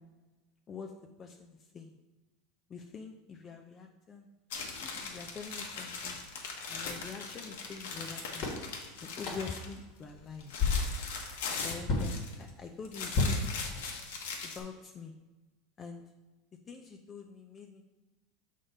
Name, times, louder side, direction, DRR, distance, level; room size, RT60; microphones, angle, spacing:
voice 1, 1.2-2.0 2.7-4.3 4.8-6.2 6.7-8.5 9.0-10.5 11.6-13.7 14.4-15.1 15.8-16.0 16.7-17.8, left 5 dB, 25° left, 4 dB, 0.4 m, -45 dB
sound 1, 4.5-9.8 10.1-12.5 12.8-14.6, left 4 dB, 85° left, 1.2 m, -40 dB
sound 2, 6.8-7.1 8.0-8.1 8.4-8.7 9.2-9.6 10.1-10.3 10.6-11.0 11.9-12.2 13.1-14.1, left 3 dB, 40° left, 1.3 m, -31 dB
7.0 x 3.7 x 5.3 m, 1.1 s
supercardioid pair, 150°, 0 cm